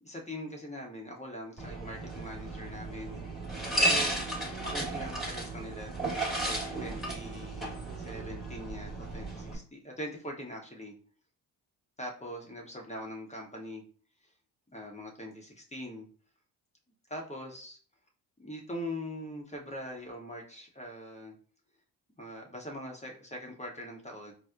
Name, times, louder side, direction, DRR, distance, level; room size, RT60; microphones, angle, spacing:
voice 1, 0.0-3.2 3.8-4.2 4.6-7.8 8.0-10.9 12.0-13.8 14.2-14.3 14.7-16.1 17.1-17.8 18.4-21.4 22.2-24.3, equal, 15° left, 0 dB, 0.9 m, -42 dB
sound 1, 1.6-9.5, right 1 dB, ahead, 1.4 m, -34 dB
4.1 x 2.1 x 2.4 m, 0.42 s
supercardioid pair, 65°, 44 cm